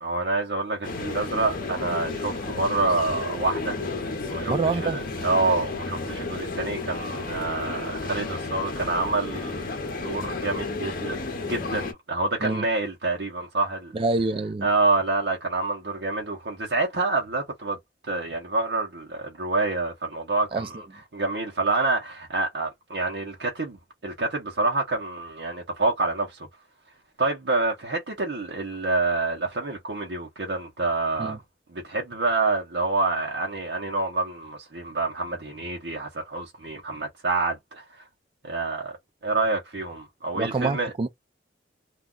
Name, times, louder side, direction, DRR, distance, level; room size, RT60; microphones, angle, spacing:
voice 1, 0.0-3.8 4.3-9.7 10.0-13.9 14.6-17.8 18.1-20.8 21.1-26.5 27.2-31.4 31.7-37.8 38.4-39.0 39.2-40.9, right 3 dB, 65° right, 0.8 m, -27 dB
sound 1, 0.8-11.9, left 3 dB, 50° left, 0.8 m, -32 dB
voice 2, 4.5-5.0 12.4-12.6 13.9-14.7 20.5-20.7 31.2-31.4 40.3-41.1, right 3 dB, 30° right, 0.4 m, -26 dB
2.3 x 2.3 x 3.7 m
head